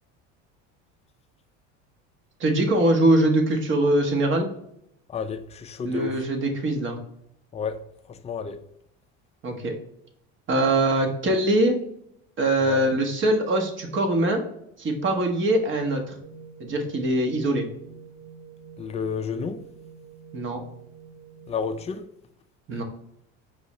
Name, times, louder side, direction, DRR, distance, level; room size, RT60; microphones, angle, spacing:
voice 1, 2.4-4.5 5.8-7.0 9.4-9.7 10.5-11.8 12.4-14.4 14.8-16.1 16.6-17.7 20.3-20.6 22.7-22.8, right 1 dB, 35° right, 1.1 m, -22 dB
voice 2, 5.1-6.2 7.5-7.8 8.1-8.6 12.6-12.8 18.8-19.6 21.5-22.1, left 6 dB, 20° left, 0.4 m, -31 dB
sound 1, 16.2-21.9, right 6 dB, 55° right, 1.0 m, -47 dB
4.8 x 2.7 x 3.1 m
supercardioid pair, 105°, 34 cm